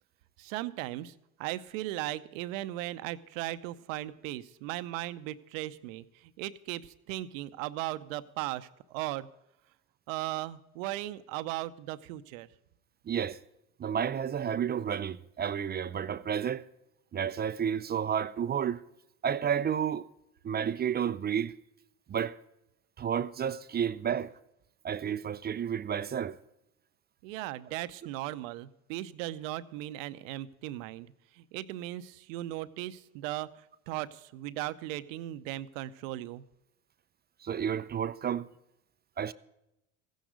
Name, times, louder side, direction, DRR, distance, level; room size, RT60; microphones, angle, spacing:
voice 1, 0.4-1.1 1.4-6.0 6.4-9.3 10.1-12.5 27.2-31.1 31.5-33.5 33.9-36.4, right 16 dB, 70° right, 0.8 m, -37 dB
voice 2, 13.1-13.4 13.8-16.6 17.1-18.8 19.2-20.1 20.4-21.5 22.1-22.4 23.0-24.3 24.8-26.4 37.4-38.5 39.2-39.3, right 8 dB, 25° right, 0.5 m, -31 dB
15.0 x 10.5 x 5.1 m
hypercardioid pair, 75°, 41 cm